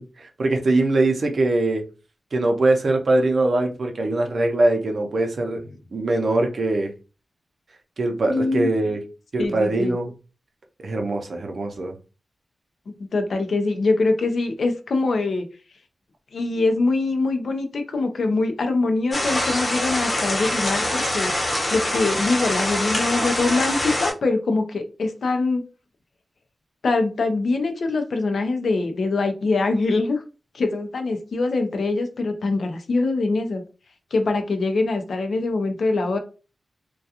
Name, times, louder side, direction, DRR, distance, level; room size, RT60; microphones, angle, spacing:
voice 1, 0.0-1.8 2.3-5.6 5.9-6.9 8.0-9.0 9.3-10.1 10.8-11.9, right 2 dB, 60° right, 0.6 m, -22 dB
voice 2, 8.3-8.7 9.4-10.0 13.1-15.5 16.3-21.3 21.7-25.6 26.8-30.2 30.5-33.6 34.1-36.2, left 3 dB, 70° left, 0.5 m, -23 dB
sound 1, 19.1-24.1, left 1 dB, 40° left, 0.9 m, -24 dB
2.3 x 2.3 x 2.8 m
cardioid pair, 65°, 0 cm